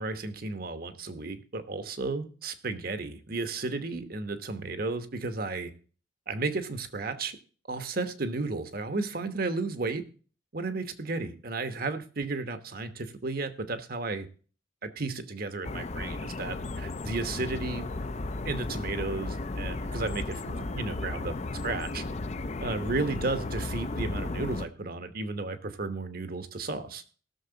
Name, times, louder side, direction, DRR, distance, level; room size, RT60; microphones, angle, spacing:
voice 1, 0.0-5.7 6.3-7.4 7.7-10.0 10.5-14.3 14.8-17.9 18.4-21.3 21.6-22.0 22.6-27.0, right 3 dB, 55° right, 10 dB, 1.1 m, -33 dB
sound 1, 15.6-24.7, left 2 dB, 40° left, 0.5 m, -34 dB
17.0 x 6.7 x 3.9 m, 0.39 s
head